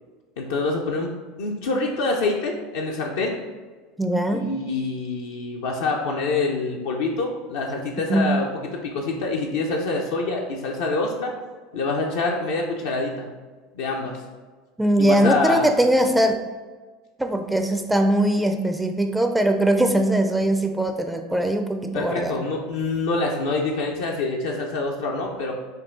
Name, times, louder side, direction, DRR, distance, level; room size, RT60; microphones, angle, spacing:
voice 1, 0.4-1.1 1.4-3.4 4.3-11.3 11.7-13.3 13.7-14.2 15.0-15.7 21.9-25.5, left 3 dB, 75° left, -1 dB, 0.5 m, -26 dB
voice 2, 4.0-4.5 8.1-8.3 14.8-16.4 17.2-22.4, right 1 dB, 5° right, 6 dB, 0.4 m, -21 dB
5.4 x 2.3 x 3.7 m, 1.4 s
hypercardioid pair, 90°, 0 cm